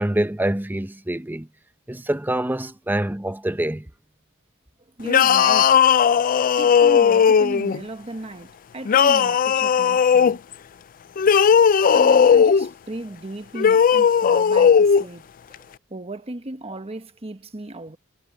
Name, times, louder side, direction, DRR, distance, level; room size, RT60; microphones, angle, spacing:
voice 1, 0.0-1.5 1.9-3.9, right 1 dB, 10° right, 0.7 m, -25 dB
voice 2, 5.0-5.8 6.6-10.4 11.9-15.3 15.9-18.0, right 1 dB, 30° right, 1.1 m, -35 dB
sound 1, 5.1-7.8 8.9-10.4 11.2-12.7 13.6-15.0, left 7 dB, 40° left, 0.4 m, -16 dB
head